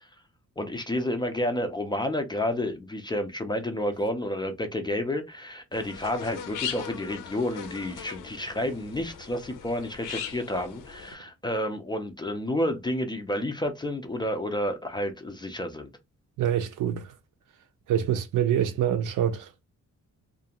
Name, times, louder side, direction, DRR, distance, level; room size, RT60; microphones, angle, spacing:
voice 1, 0.6-15.9, left 1 dB, 15° left, 0.3 m, -30 dB
sound 1, 5.7-11.1, left 8 dB, 80° left, 0.6 m, -39 dB
voice 2, 16.4-17.1 17.9-19.7, right 10 dB, 85° right, 0.6 m, -26 dB
2.5 x 2.3 x 2.8 m
wide cardioid pair, 165°, 31 cm